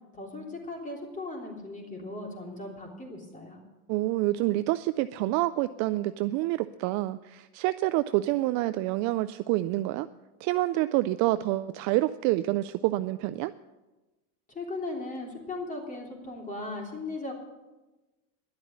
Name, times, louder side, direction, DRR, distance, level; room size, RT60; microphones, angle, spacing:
voice 1, 0.1-3.6 14.5-17.3, left 2 dB, 15° left, 1 dB, 3.3 m, -37 dB
voice 2, 3.9-10.1 10.4-13.5, right 17 dB, 45° right, 12 dB, 0.4 m, -27 dB
11.5 x 7.9 x 9.7 m, 1.1 s
supercardioid pair, 125°, 43 cm